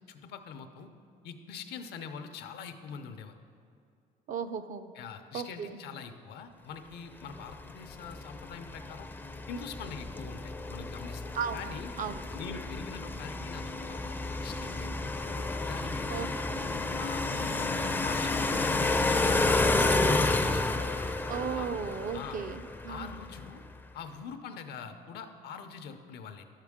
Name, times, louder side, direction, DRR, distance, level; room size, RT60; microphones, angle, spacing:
voice 1, 0.1-0.9 1.2-3.3 4.9-9.1 9.5-11.2 11.5-11.9 12.3-15.1 15.7-16.3 17.0-20.8 21.5-21.7 22.1-22.4 22.9-23.6 23.9-26.4, left 6 dB, 75° left, 8 dB, 0.7 m, -44 dB
voice 2, 4.3-4.9 5.3-5.8 11.3-11.6 12.0-12.2 16.1-16.6 21.3-23.1, right 7 dB, 50° right, 10 dB, 0.4 m, -36 dB
sound 1, 7.3-23.5, left 2 dB, 10° left, 0.4 m, -31 dB
11.0 x 7.3 x 3.6 m, 2.4 s
cardioid pair, 110°, 17 cm